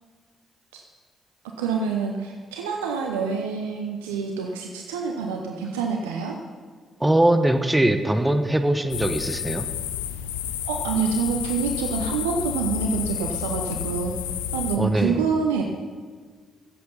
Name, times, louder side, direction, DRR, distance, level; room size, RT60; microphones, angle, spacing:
voice 1, 1.6-6.4 10.6-14.1 14.5-15.6, right 5 dB, 90° right, 2 dB, 0.8 m, -27 dB
voice 2, 7.0-9.7 14.8-15.2, right 1 dB, 10° right, 8 dB, 1.2 m, -21 dB
sound 1, 8.9-14.8, left 10 dB, 90° left, 0.5 m, -30 dB
16.0 x 7.8 x 5.4 m, 1.5 s
hypercardioid pair, 45°, 0 cm